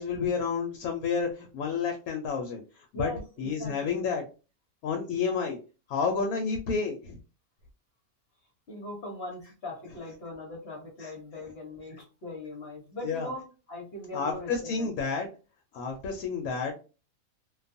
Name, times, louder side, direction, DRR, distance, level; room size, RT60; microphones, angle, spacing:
voice 1, 0.0-2.6 2.9-3.1 3.4-4.2 4.8-5.6 5.9-7.2 11.0-11.1 13.0-13.3 14.1-15.3 15.7-16.7, left 5 dB, 75° left, 3 dB, 1.0 m, -30 dB
voice 2, 2.9-4.0 8.7-13.4 13.7-14.9, left 1 dB, 50° left, -1 dB, 0.9 m, -40 dB
2.5 x 2.3 x 2.5 m, 0.34 s
omnidirectional pair, 1.6 m